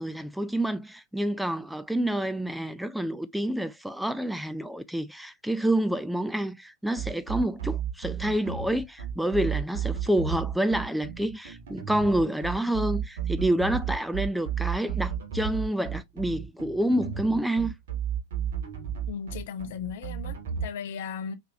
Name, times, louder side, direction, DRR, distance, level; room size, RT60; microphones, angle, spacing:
voice 1, 0.0-17.7, right 1 dB, ahead, 0.3 m, -28 dB
sound 1, 7.0-20.7, right 8 dB, 60° right, 1.6 m, -32 dB
voice 2, 19.1-21.3, left 7 dB, 55° left, 0.7 m, -36 dB
5.0 x 3.8 x 2.6 m
figure-of-eight pair, 90°, 0 cm